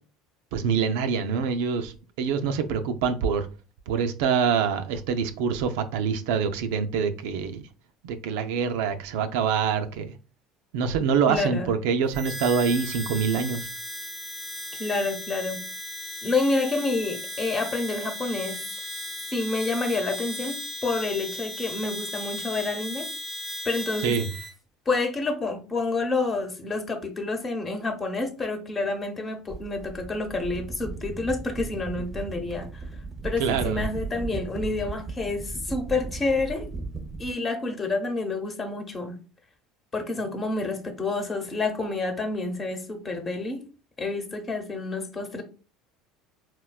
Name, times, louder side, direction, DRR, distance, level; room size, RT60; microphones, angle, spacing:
voice 1, 0.5-3.5 3.9-7.6 8.0-10.1 10.7-13.7 24.0-24.3 33.4-33.8, right 6 dB, 75° right, 0.3 m, -25 dB
voice 2, 11.3-11.7 14.8-15.7 16.2-18.7 19.3-23.1 23.6-24.2 24.9-32.8 33.2-36.7 37.2-39.2 39.9-43.6 44.0-45.4, left 3 dB, 30° left, 0.8 m, -28 dB
Harmonica, 12.1-24.5, left 1 dB, 5° left, 0.8 m, -36 dB
sound 1, 29.5-37.3, right 4 dB, 25° right, 0.6 m, -36 dB
4.1 x 2.2 x 2.2 m
hypercardioid pair, 80°, 0 cm